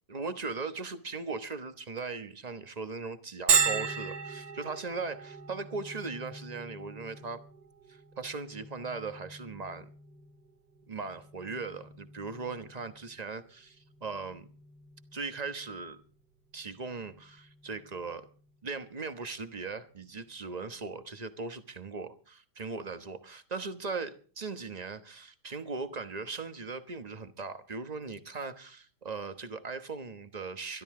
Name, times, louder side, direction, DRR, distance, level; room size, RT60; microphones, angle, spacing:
voice 1, 0.1-7.4 7.9-9.9 10.9-14.5 15.1-16.0 16.5-18.3 18.6-30.8, right 4 dB, 25° right, 0.9 m, -39 dB
Bell, 3.5-18.9, right 6 dB, 65° right, 1.9 m, -37 dB
22.0 x 13.0 x 3.7 m
omnidirectional pair, 2.3 m